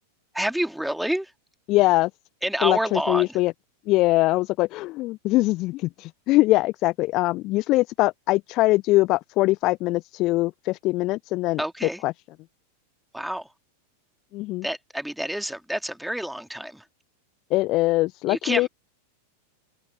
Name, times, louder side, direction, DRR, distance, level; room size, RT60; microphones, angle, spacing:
voice 1, 0.3-1.3 2.4-3.4 11.6-12.0 13.1-13.5 14.6-16.8 18.3-18.7, right 1 dB, ahead, 2.8 m, -28 dB
voice 2, 1.7-2.1 2.6-3.5 3.9-11.6 12.0-12.1 14.3-14.6 17.5-18.7, left 19 dB, 40° left, 0.7 m, -22 dB
open air
figure-of-eight pair, 90°, 0 cm